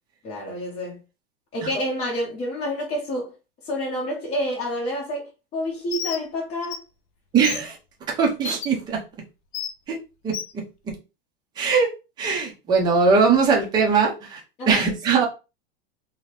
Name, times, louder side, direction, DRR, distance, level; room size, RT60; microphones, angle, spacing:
voice 1, 0.2-1.0 1.5-3.3 3.6-6.8 14.6-14.8, equal, 20° left, 0.8 m, -28 dB
Bird, 5.9-6.2 6.6-6.8 7.4-7.6 8.4-8.7 9.5-9.7 10.3-10.5, left 7 dB, 40° left, 0.4 m, -30 dB
voice 2, 7.3-7.8 8.2-9.0 9.9-10.0 10.2-10.6 11.6-11.9 12.2-14.4 14.7-15.2, right 5 dB, 15° right, 0.6 m, -20 dB
2.8 x 2.7 x 3.2 m
supercardioid pair, 170°, 29 cm